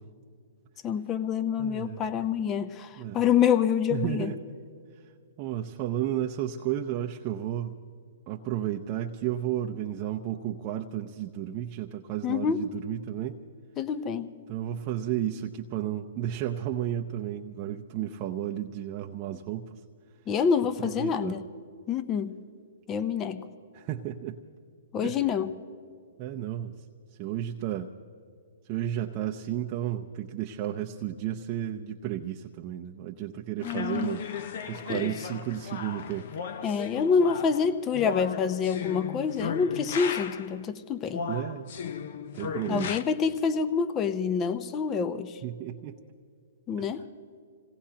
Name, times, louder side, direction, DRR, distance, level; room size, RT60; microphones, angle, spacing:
voice 1, 0.8-4.3 12.2-12.6 13.8-14.3 20.3-21.4 21.9-22.3 22.9-23.4 24.9-25.5 33.6-34.2 34.9-35.1 36.6-41.3 42.7-45.4 46.7-47.0, left 6 dB, 25° left, 11 dB, 0.8 m, -27 dB
voice 2, 1.6-2.0 3.0-3.2 3.9-4.4 5.4-7.8 8.3-13.4 14.5-19.8 20.8-21.4 23.7-24.4 25.0-25.2 26.2-26.7 27.2-27.9 28.7-34.3 34.7-36.3 41.3-41.7 42.4-42.9 45.4-46.0 46.8-46.9, right 11 dB, 35° right, 2 dB, 0.7 m, -32 dB
sound 1, 33.6-40.6 41.1-43.0, left 7 dB, 55° left, 0.8 m, -36 dB
26.5 x 18.0 x 2.9 m, 2.3 s
hypercardioid pair, 135°, 0 cm